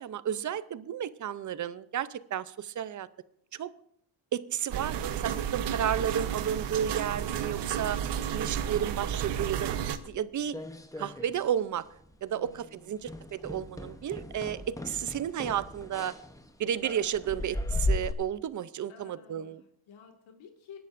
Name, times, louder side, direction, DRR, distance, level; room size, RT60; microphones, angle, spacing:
voice 1, 0.0-3.1 3.5-3.7 4.3-8.0 8.3-10.6 11.0-11.8 12.2-16.2 16.6-19.6, right 9 dB, 40° right, 0.6 m, -32 dB
sound 1, 4.7-10.0, right 9 dB, 65° right, 1.0 m, -32 dB
sound 2, 10.1-11.5 11.8-12.1 12.4-12.6 13.0-18.1, left 2 dB, 5° left, 0.8 m, -36 dB
voice 2, 12.3-13.1 18.9-20.8, left 7 dB, 80° left, 2.0 m, -53 dB
26.5 x 11.0 x 2.5 m
cardioid pair, 125°, 47 cm